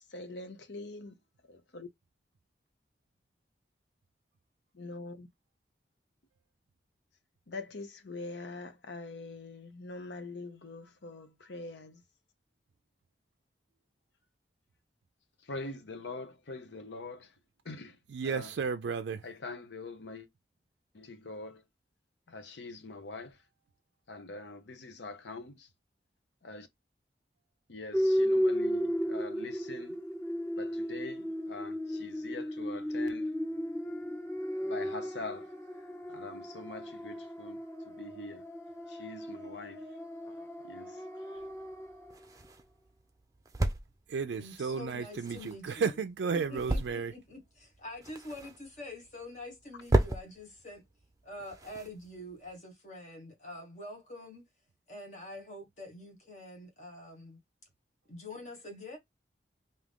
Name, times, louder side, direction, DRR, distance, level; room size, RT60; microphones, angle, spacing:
voice 1, 0.1-1.2 1.5-1.9 4.7-5.3 7.5-12.0 15.4-17.3 17.6-18.0 18.2-18.5 19.2-20.3 20.9-21.6 22.3-23.4 24.1-25.7 26.4-26.7 27.7-30.0 30.6-33.3 34.6-35.5 36.1-38.4 38.9-39.9 40.6-41.0, left 3 dB, 85° left, 0.7 m, -43 dB
voice 2, 18.1-19.3 44.1-47.1, right 5 dB, 85° right, 0.4 m, -33 dB
sound 1, 27.9-42.1, equal, 15° left, 0.8 m, -34 dB
sound 2, 41.4-52.6, right 1 dB, 20° right, 0.5 m, -36 dB
voice 3, 44.4-45.8 46.3-50.8 51.2-54.4 54.9-57.4 58.1-59.0, left 1 dB, 40° left, 1.4 m, -46 dB
3.6 x 2.7 x 3.5 m
head